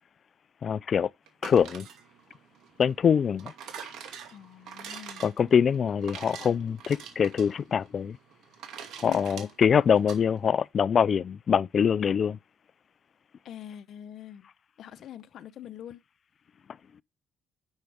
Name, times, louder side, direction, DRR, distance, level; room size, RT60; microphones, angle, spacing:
voice 1, 0.6-1.1 1.4-1.9 2.8-3.5 5.2-8.2 9.0-12.4, left 7 dB, 50° left, 0.4 m, -24 dB
sound 1, 1.3-10.2, right 7 dB, 85° right, 2.4 m, -45 dB
voice 2, 4.3-5.3 9.0-9.5 13.4-14.5 14.8-16.0, left 10 dB, 70° left, 0.9 m, -43 dB
10.5 x 6.5 x 3.4 m
cardioid pair, 90°, 0 cm